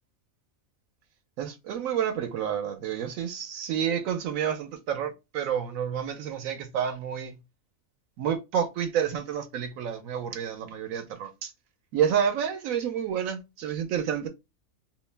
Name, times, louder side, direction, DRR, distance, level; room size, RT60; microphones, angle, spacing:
voice 1, 1.4-7.4 8.2-11.5 11.9-14.3, right 8 dB, 80° right, 1.1 m, -29 dB
2.7 x 2.1 x 3.2 m
omnidirectional pair, 1.4 m